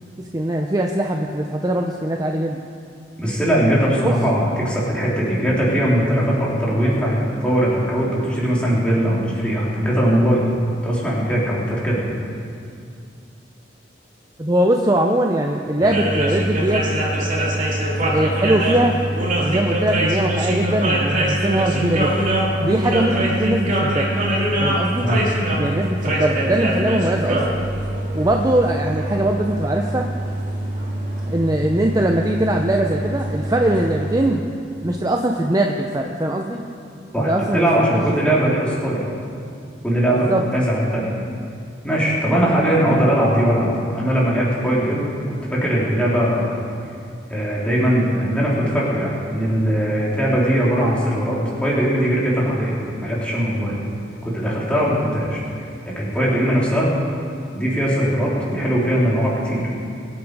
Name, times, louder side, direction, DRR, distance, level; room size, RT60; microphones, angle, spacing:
voice 1, 0.3-2.6 4.0-4.1 14.4-16.8 18.0-19.0 19.4-22.2 22.6-24.1 24.6-25.1 25.6-27.4 28.1-30.0 31.2-34.4 34.8-36.6 37.2-37.9 40.3-40.4, right 1 dB, 20° right, 1 dB, 0.6 m, -21 dB
voice 2, 3.2-10.5 10.8-12.0 25.0-25.2 37.1-39.0 39.8-41.1 41.8-45.1 45.5-46.6 47.3-53.8 54.2-55.4 56.0-56.9 57.5-59.7, equal, 5° left, -7 dB, 3.5 m, -20 dB
sound 1, 15.8-34.3, right 1 dB, 45° right, 2.7 m, -23 dB
23.5 x 8.6 x 4.8 m, 2.4 s
head